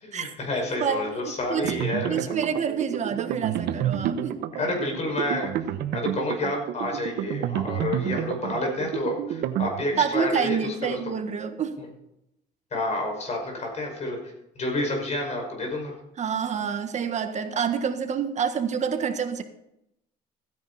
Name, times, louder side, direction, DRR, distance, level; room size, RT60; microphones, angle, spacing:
voice 1, 0.0-2.2 4.6-5.5 5.9-11.0 11.8-11.9 12.7-14.2 14.6-15.9, left 2 dB, 40° left, 1 dB, 5.6 m, -29 dB
voice 2, 0.8-1.8 2.1-4.4 10.0-11.8 16.2-19.4, right 7 dB, 45° right, 8 dB, 1.5 m, -28 dB
sound 1, 1.6-10.2, right 10 dB, 75° right, 0.9 m, -30 dB
15.5 x 10.0 x 4.2 m, 0.81 s
cardioid pair, 110°, 17 cm